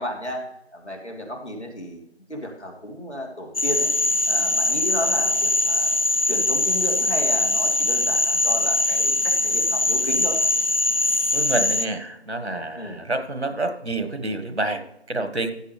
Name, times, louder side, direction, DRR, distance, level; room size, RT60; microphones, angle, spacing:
voice 1, 0.0-2.0 2.3-3.9 4.3-5.9 6.3-10.4 12.7-13.0, left 1 dB, 90° left, 1 dB, 2.8 m, -33 dB
Frog, 3.5-11.9, left 2 dB, 55° left, 0.7 m, -22 dB
voice 2, 11.3-15.5, right 2 dB, 80° right, 8 dB, 1.6 m, -28 dB
14.0 x 8.3 x 3.3 m, 0.81 s
figure-of-eight pair, 180°, 33 cm